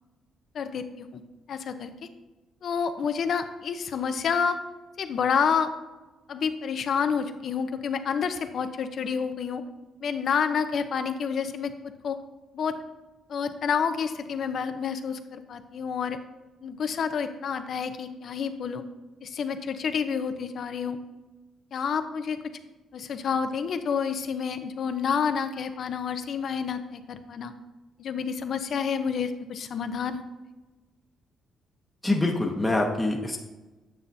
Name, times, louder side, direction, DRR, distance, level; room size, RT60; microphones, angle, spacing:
voice 1, 0.5-1.2 1.5-1.9 2.6-4.6 5.0-5.7 6.3-9.6 10.0-11.7 12.0-12.2 12.5-12.8 13.3-16.2 16.6-18.8 19.2-21.0 21.7-22.4 22.9-27.5 28.0-30.2, left 6 dB, 60° left, 9 dB, 0.6 m, -29 dB
voice 2, 32.0-33.4, left 2 dB, 10° left, -1 dB, 0.9 m, -25 dB
9.0 x 7.0 x 2.7 m, 1.1 s
cardioid pair, 90°, 0 cm